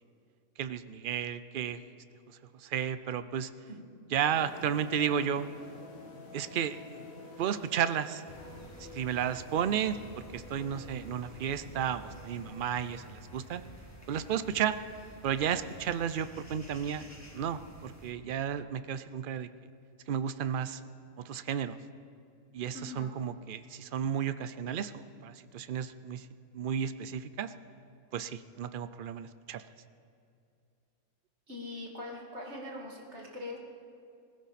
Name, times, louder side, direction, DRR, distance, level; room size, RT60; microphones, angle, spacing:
voice 1, 0.6-1.8 2.3-3.5 4.1-5.5 6.3-7.0 7.4-8.2 8.8-10.0 10.3-13.6 14.1-14.8 15.2-17.0 17.3-19.5 20.1-20.8 21.2-21.8 22.5-26.3 26.5-27.5 28.1-29.6, right 8 dB, 70° right, 12 dB, 0.5 m, -33 dB
sound 1, 4.3-13.0, left 3 dB, 70° left, 2.1 m, -50 dB
sound 2, 8.3-18.1, equal, 10° left, 1.8 m, -51 dB
voice 2, 22.7-23.1 31.5-33.6, left 2 dB, 50° right, -2 dB, 2.6 m, -42 dB
20.5 x 15.5 x 4.2 m, 2.5 s
omnidirectional pair, 1.5 m